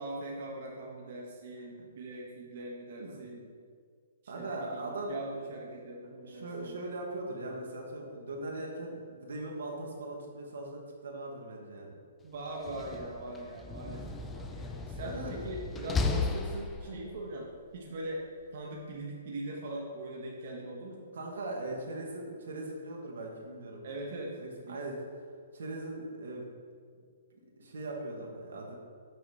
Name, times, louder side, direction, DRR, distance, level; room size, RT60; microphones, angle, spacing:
voice 1, 0.0-3.5 4.2-6.8 12.2-18.2 18.5-21.0 23.8-24.4 24.6-24.8, right 1 dB, 50° right, -2 dB, 0.9 m, -41 dB
voice 2, 4.3-5.4 6.2-12.0 13.9-14.1 15.0-15.3 21.1-23.8 24.4-25.0 25.5-26.4 27.6-28.8, right 2 dB, 85° right, 0 dB, 1.3 m, -40 dB
Slam, 12.5-17.2, left 4 dB, 10° left, 0.3 m, -35 dB
6.2 x 4.1 x 4.8 m, 2.1 s
hypercardioid pair, 155°, 0 cm